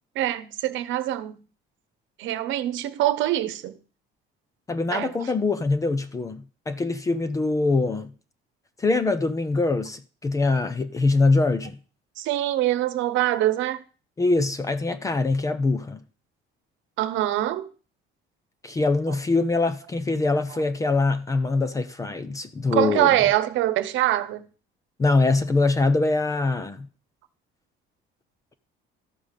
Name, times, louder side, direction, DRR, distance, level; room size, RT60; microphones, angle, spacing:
voice 1, 0.1-1.4 2.2-3.8 4.9-5.3 12.2-13.8 17.0-17.7 22.7-24.5, right 14 dB, 65° right, 1.1 m, -24 dB
voice 2, 4.7-8.1 8.8-11.8 14.2-16.0 18.6-23.2 25.0-26.9, left 3 dB, 15° left, 0.6 m, -23 dB
13.0 x 5.5 x 6.7 m
cardioid pair, 175°, 21 cm